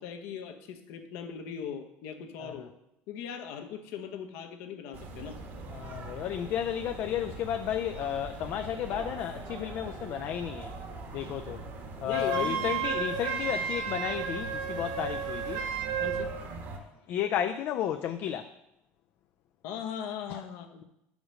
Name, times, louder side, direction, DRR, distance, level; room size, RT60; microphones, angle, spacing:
voice 1, 0.0-2.7 3.1-5.4 12.0-12.7 16.0-16.3 19.6-20.8, left 8 dB, 75° left, 1.0 m, -39 dB
sound 1, 4.9-16.8, right 3 dB, 50° right, 1.4 m, -42 dB
voice 2, 5.7-10.7 11.1-11.6 12.0-15.6 17.1-18.5 20.3-20.4, left 10 dB, 55° left, 0.4 m, -33 dB
Wind instrument woodwind instrument, 12.1-16.3, right 7 dB, 90° right, 1.0 m, -32 dB
6.2 x 5.0 x 6.4 m
cardioid pair, 130°, 5 cm